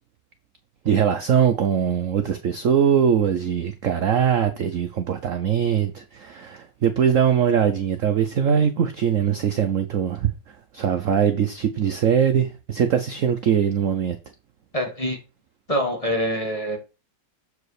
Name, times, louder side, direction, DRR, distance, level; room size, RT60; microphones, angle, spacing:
voice 1, 0.8-10.3 10.7-14.2, right 8 dB, 60° right, 0.8 m, -21 dB
voice 2, 14.7-15.2 15.7-16.8, equal, 20° left, 1.5 m, -25 dB
7.3 x 4.8 x 4.8 m
omnidirectional pair, 2.0 m